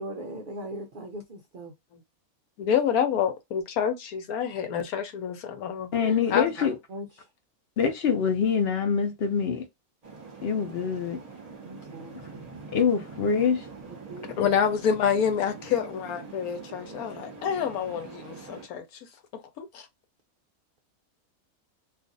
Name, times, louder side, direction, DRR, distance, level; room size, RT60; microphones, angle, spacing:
voice 1, 0.0-1.7 6.0-7.3 11.6-12.5 14.1-14.5, right 1 dB, 65° right, 0.5 m, -40 dB
voice 2, 2.6-5.9 6.3-6.5 14.4-18.8 19.6-19.9, left 7 dB, 80° left, 1.1 m, -27 dB
voice 3, 5.9-6.8 7.8-9.6 10.4-11.2 12.1-12.3 12.7-13.7, left 6 dB, 55° left, 0.8 m, -25 dB
sound 1, 10.0-18.7, right 4 dB, 30° right, 0.9 m, -44 dB
2.5 x 2.4 x 3.8 m
omnidirectional pair, 1.5 m